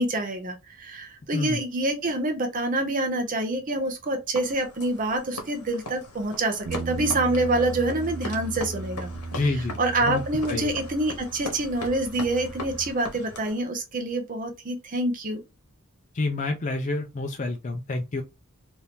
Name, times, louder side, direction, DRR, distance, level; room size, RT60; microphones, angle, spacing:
voice 1, 0.0-9.1 9.5-15.4, right 2 dB, 35° right, 0.6 m, -27 dB
Running at night, 4.3-13.6, left 2 dB, 80° left, 1.1 m, -40 dB
Bass guitar, 6.7-12.9, right 4 dB, 85° right, 0.7 m, -37 dB
voice 2, 9.3-10.2 10.5-10.7 16.1-18.2, left 2 dB, 35° left, 0.4 m, -28 dB
2.9 x 2.6 x 3.4 m
head